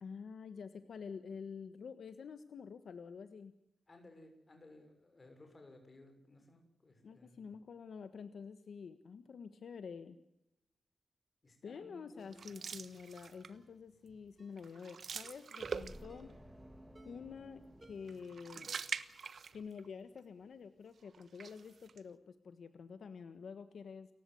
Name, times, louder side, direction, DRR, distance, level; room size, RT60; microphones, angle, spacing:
voice 1, 0.0-3.5 7.0-10.2 11.6-16.3 17.0-17.6 17.9-18.8 19.5-24.1, left 6 dB, 75° left, 10 dB, 1.4 m, -48 dB
voice 2, 3.9-7.5 11.4-12.8 15.6-15.8, left 2 dB, 30° left, 5 dB, 6.2 m, -59 dB
sound 1, 12.3-13.7 14.1-14.3 14.6-16.3 18.1-19.9 20.2-20.3 21.1-22.0, right 6 dB, 60° right, 1.2 m, -44 dB
Ringtone, 12.7-12.9 13.5-13.8 14.4-14.6 15.2-15.5 16.1-16.4 17.0-17.3 17.8-18.2 18.7-19.1 19.4-19.5, right 2 dB, 25° right, 3.6 m, -63 dB
sound 2, 15.6-19.1, equal, ahead, 2.3 m, -55 dB
29.5 x 15.5 x 7.8 m, 0.85 s
wide cardioid pair, 170°, 0 cm